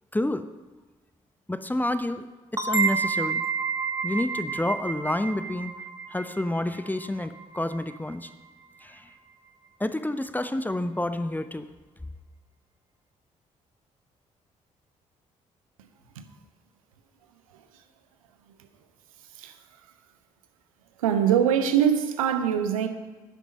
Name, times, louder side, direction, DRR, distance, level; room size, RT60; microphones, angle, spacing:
voice 1, 0.1-0.5 1.5-2.2 2.5-3.5 4.0-5.7 6.1-8.3 8.8-9.1 9.8-11.7, left 1 dB, 10° left, 11 dB, 0.8 m, -29 dB
sound 1, 2.6-8.0, right 5 dB, 15° right, 1.2 m, -30 dB
voice 2, 21.0-22.9, right 9 dB, 80° right, 8 dB, 0.9 m, -23 dB
11.5 x 10.5 x 5.3 m, 1.3 s
figure-of-eight pair, 40°, 17 cm